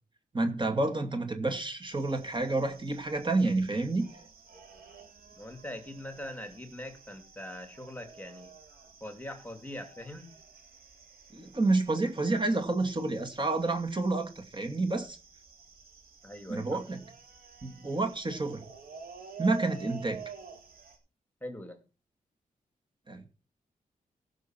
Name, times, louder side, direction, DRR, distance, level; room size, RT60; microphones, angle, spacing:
voice 1, 0.3-4.1 11.3-15.2 16.5-17.0 17.6-18.6 19.4-20.2 23.1-23.3, right 2 dB, 30° right, 5 dB, 2.5 m, -29 dB
sound 1, 1.9-21.0, right 4 dB, 90° right, 3.9 m, -50 dB
voice 2, 5.4-8.5 9.0-10.3 16.2-16.8 21.4-21.8, left 1 dB, 10° left, 6 dB, 2.7 m, -42 dB
17.0 x 6.5 x 6.1 m, 0.34 s
wide cardioid pair, 95°, 15 cm